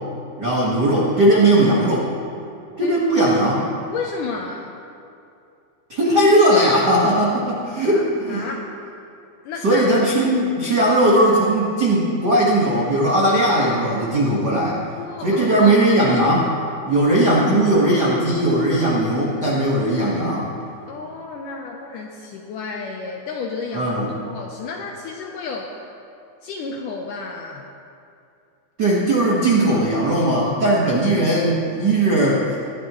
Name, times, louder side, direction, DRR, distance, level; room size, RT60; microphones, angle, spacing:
voice 1, 0.4-2.1 2.8-3.7 5.9-8.4 9.6-14.8 15.2-16.5 16.8-20.5 23.7-24.1 28.8-32.4, right 1 dB, 85° right, -5 dB, 0.9 m, -18 dB
voice 2, 2.4-3.0 3.9-4.8 7.8-8.0 8.3-8.7 9.4-9.9 14.9-15.7 16.1-16.2 20.9-23.9 24.3-25.7 26.4-27.7, left 4 dB, 75° left, 1 dB, 1.9 m, -32 dB
19.5 x 12.0 x 3.1 m, 2.6 s
omnidirectional pair, 4.6 m